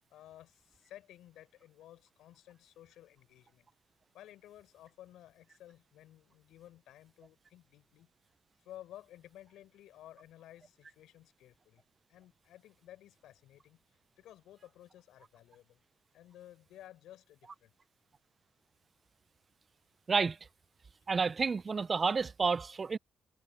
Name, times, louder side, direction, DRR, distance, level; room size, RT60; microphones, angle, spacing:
voice 1, 0.1-3.7 4.1-8.1 8.6-11.8 12.1-13.8 14.2-15.8 16.1-17.7, left 13 dB, 85° left, 4.0 m, -55 dB
voice 2, 21.1-23.0, right 5 dB, 35° right, 0.3 m, -30 dB
cardioid pair, 90°, 0 cm